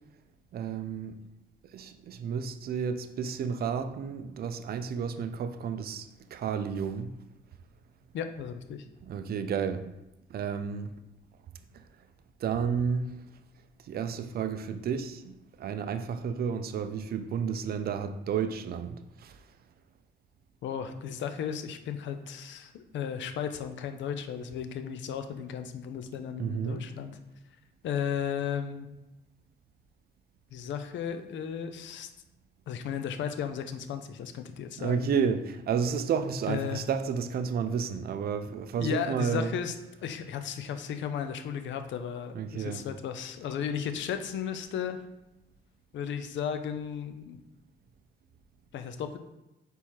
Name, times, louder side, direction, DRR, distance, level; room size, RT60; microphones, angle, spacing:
voice 1, 0.5-1.2 1.7-6.1 6.3-7.1 9.0-9.9 10.3-10.9 12.4-13.1 13.9-15.2 15.6-19.4 26.4-26.8 34.8-39.5 42.3-42.8, right 6 dB, 50° right, 9 dB, 0.4 m, -31 dB
voice 2, 8.1-8.8 20.6-27.1 27.8-28.9 30.5-32.1 32.7-35.1 36.5-36.8 38.8-39.7 40.0-45.0 45.9-47.4 48.7-49.2, left 8 dB, 70° left, 9 dB, 0.5 m, -35 dB
4.4 x 3.4 x 2.9 m, 0.95 s
cardioid pair, 90°, 20 cm